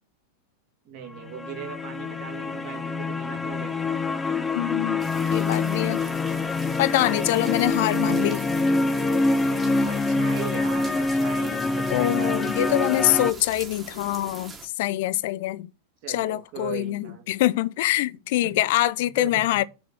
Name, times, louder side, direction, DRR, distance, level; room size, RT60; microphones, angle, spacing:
voice 1, 0.8-4.0 7.9-8.3 9.8-13.2 16.0-17.2 18.4-18.7 19.0-19.6, right 8 dB, 45° right, 2.3 m, -39 dB
sound 1, 1.1-13.3, left 3 dB, 15° left, 0.7 m, -25 dB
voice 2, 4.5-5.0 5.3-6.0 6.8-8.4 11.9-15.7 16.1-19.6, left 16 dB, 50° left, 0.4 m, -24 dB
sound 2, 5.0-14.7, right 4 dB, 15° right, 1.8 m, -43 dB
6.3 x 4.5 x 6.1 m
figure-of-eight pair, 90°, 0 cm